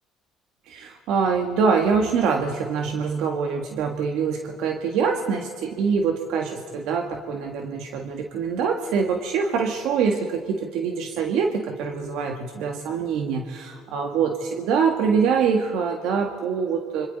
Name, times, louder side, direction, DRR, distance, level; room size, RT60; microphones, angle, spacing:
voice 1, 0.7-17.1, right 6 dB, 80° right, 3 dB, 1.6 m, -24 dB
25.5 x 25.0 x 4.1 m, 2.1 s
cardioid pair, 90°, 0 cm